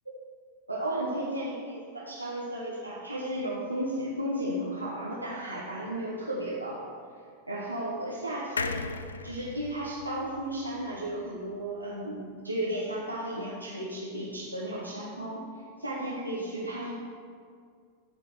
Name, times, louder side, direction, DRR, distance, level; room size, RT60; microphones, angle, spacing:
voice 1, 0.7-6.8 7.5-8.9 9.2-15.4 15.8-16.9, right 1 dB, 85° right, -6 dB, 1.0 m, -34 dB
sound 1, 8.6-12.0 12.4-12.5 12.7-12.8, left 4 dB, 75° left, 0.3 m, -38 dB
12.5 x 4.4 x 4.7 m, 2.2 s
figure-of-eight pair, 90°, 0 cm